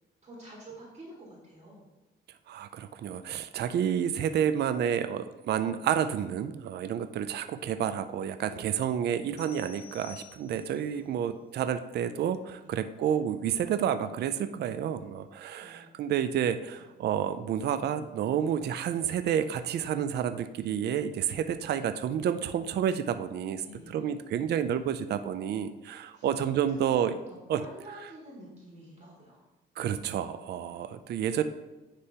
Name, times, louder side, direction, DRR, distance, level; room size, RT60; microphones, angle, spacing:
voice 1, 0.2-1.9 10.9-11.3 12.6-12.7 15.6-16.0 16.7-16.8 23.6-24.1 26.1-26.5 27.3-29.4 30.6-30.8, right 1 dB, 35° right, -5 dB, 1.9 m, -49 dB
voice 2, 2.5-27.2 27.5-27.7 29.8-31.4, right 9 dB, 55° right, 10 dB, 0.4 m, -30 dB
sound 1, 9.4-10.9, left 7 dB, 60° left, 1.4 m, -51 dB
9.8 x 3.4 x 2.8 m, 1.1 s
cardioid pair, 90°, 20 cm